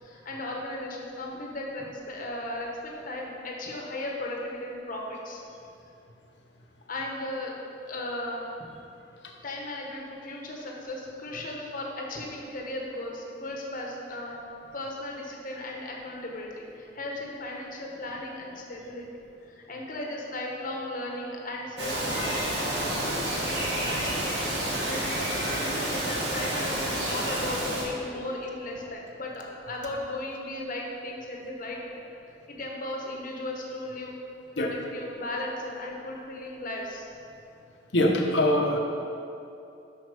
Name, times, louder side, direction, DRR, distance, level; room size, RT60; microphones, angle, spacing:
voice 1, 0.0-5.4 6.9-8.7 9.4-14.5 14.7-19.1 19.5-22.4 23.2-24.2 24.6-32.0 32.5-34.1 34.6-37.1, left 1 dB, 50° left, -1 dB, 1.1 m, -36 dB
Bird vocalization bird call bird song, 21.8-27.8, right 1 dB, 65° right, 1.9 m, -29 dB
voice 2, 21.9-22.7 34.6-34.7 37.9-38.8, left 1 dB, 75° left, 1 dB, 1.0 m, -25 dB
8.0 x 6.0 x 5.0 m, 2.7 s
head